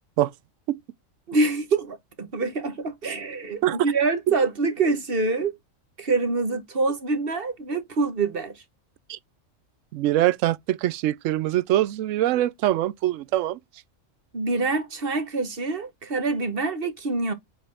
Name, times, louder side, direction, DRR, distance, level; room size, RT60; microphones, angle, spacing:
voice 1, 1.3-5.6 6.0-8.6 14.3-17.3, right 3 dB, 45° right, 1.4 m, -25 dB
voice 2, 9.9-13.6, right 14 dB, 75° right, 0.9 m, -23 dB
8.1 x 3.6 x 3.5 m
omnidirectional pair, 1.4 m